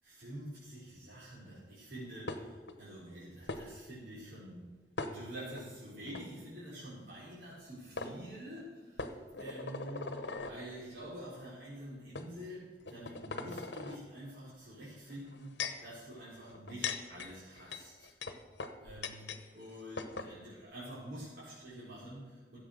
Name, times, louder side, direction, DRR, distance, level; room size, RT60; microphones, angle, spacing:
voice 1, 0.0-9.1 9.4-18.1 18.8-22.6, right 1 dB, 75° right, -10 dB, 4.6 m, -47 dB
sound 1, 2.3-2.7 3.5-3.6 5.0-5.6 6.1-6.2 7.5-7.6 8.0-8.1 9.0-10.6 11.4-11.5 12.1-12.3 12.8-14.0 15.1-15.9 16.5-19.4 19.7-19.8 20.0-20.3, left 4 dB, 80° left, 1.0 m, -40 dB
13.5 x 8.4 x 6.6 m, 1.3 s
head